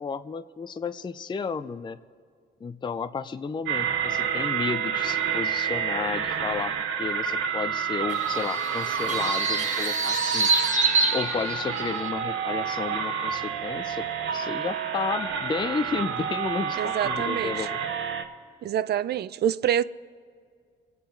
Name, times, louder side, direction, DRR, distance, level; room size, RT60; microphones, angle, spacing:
voice 1, 0.0-2.0 2.6-10.5 11.1-14.1 14.3-17.8, left 5 dB, 25° left, 0.5 m, -32 dB
sound 1, 3.7-18.2, right 7 dB, 80° right, 1.2 m, -29 dB
sound 2, 8.1-12.1, right 3 dB, 40° right, 1.3 m, -27 dB
voice 2, 16.8-17.7 18.6-19.8, right 10 dB, 55° right, 0.4 m, -26 dB
25.0 x 8.6 x 3.9 m
cardioid pair, 90°, 20 cm